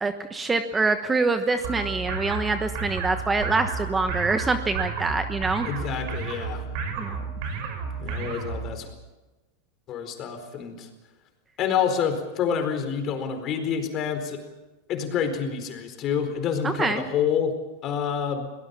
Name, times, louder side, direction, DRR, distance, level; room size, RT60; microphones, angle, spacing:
voice 1, 0.0-5.7 7.0-7.2 16.6-17.0, right 3 dB, 15° right, 8 dB, 1.1 m, -25 dB
sound 1, 1.6-8.7, right 5 dB, 55° right, 5.4 m, -32 dB
voice 2, 5.6-6.6 8.0-8.9 9.9-10.9 11.6-14.4 14.9-17.5 17.8-18.5, left 7 dB, 40° left, 7 dB, 4.3 m, -27 dB
22.5 x 19.0 x 7.0 m, 1.1 s
supercardioid pair, 130°, 0 cm